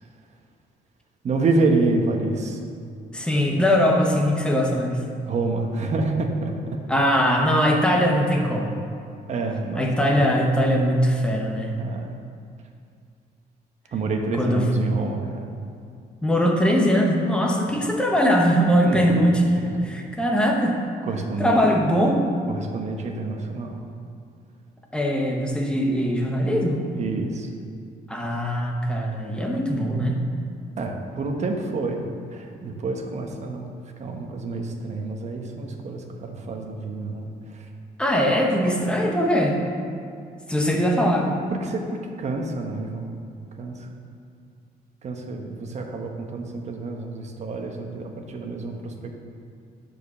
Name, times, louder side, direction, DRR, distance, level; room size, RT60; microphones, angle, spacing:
voice 1, 1.2-2.6 5.2-6.8 9.3-9.9 11.8-12.1 13.9-15.2 17.7-17.9 18.8-19.2 21.0-21.6 22.5-23.8 26.9-27.5 30.8-32.0 32.3-33.7 34.0-37.7 41.5-43.1 43.6-43.9 45.0-49.1, right 3 dB, 40° right, 3 dB, 1.1 m, -28 dB
voice 2, 3.1-5.0 6.9-8.8 9.8-11.8 14.4-14.7 16.2-19.4 19.9-20.8 21.4-22.2 24.9-26.8 28.1-30.2 38.0-39.6 40.5-41.4, equal, 5° left, 0 dB, 1.1 m, -21 dB
9.2 x 5.1 x 7.0 m, 2.3 s
cardioid pair, 145°, 17 cm